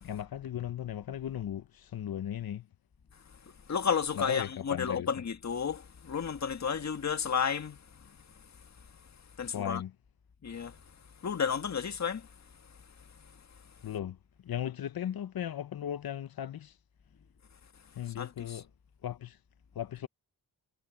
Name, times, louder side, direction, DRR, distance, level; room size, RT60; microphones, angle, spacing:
voice 1, 0.0-2.7 4.1-5.1 9.5-9.9 13.8-14.2 14.4-16.7 18.0-18.7 19.0-19.4 19.7-20.1, left 10 dB, 60° left, 1.0 m, -37 dB
voice 2, 3.7-7.8 9.4-9.8 10.4-10.7 11.2-12.2 18.2-18.6, left 6 dB, 40° left, 1.8 m, -32 dB
cardioid pair, 70°, 41 cm